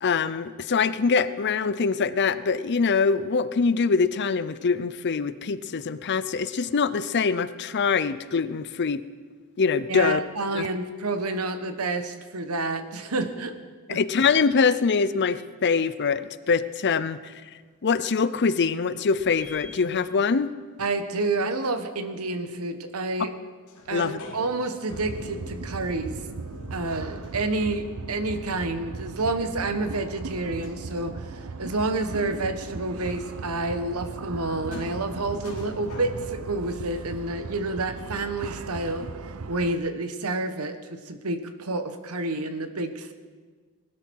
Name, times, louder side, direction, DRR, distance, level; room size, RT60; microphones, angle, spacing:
voice 1, 0.0-9.0 9.6-10.2 10.5-10.7 13.9-17.4 17.8-20.5 23.9-24.2, left 5 dB, 50° left, 14 dB, 0.6 m, -24 dB
voice 2, 9.9-13.6 13.9-14.0 20.8-23.3 23.9-26.1 26.7-39.1 39.5-43.1, right 2 dB, 90° right, 9 dB, 1.2 m, -29 dB
sound 1, 19.1-20.6 23.7-28.3 30.6-36.6, left 1 dB, 85° left, 2.9 m, -44 dB
sound 2, 24.9-39.7, right 4 dB, 70° right, 0.7 m, -38 dB
20.0 x 12.5 x 4.7 m, 1.5 s
head